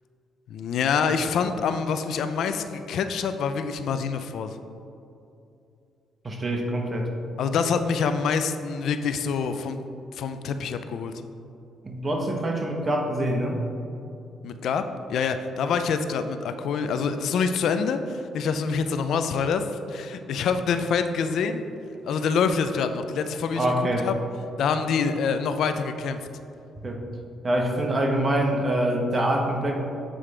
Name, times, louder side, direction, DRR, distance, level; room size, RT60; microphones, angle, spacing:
voice 1, 0.5-4.6 7.4-9.8 10.1-11.1 14.4-14.8 15.1-21.7 22.0-24.1 24.6-26.2, left 5 dB, 75° left, 9 dB, 0.3 m, -26 dB
voice 2, 6.2-7.1 11.8-13.6 23.5-24.1 26.8-27.0 27.4-29.8, right 1 dB, 30° right, 2 dB, 1.0 m, -25 dB
7.5 x 4.9 x 3.2 m, 2.7 s
cardioid pair, 90°, 0 cm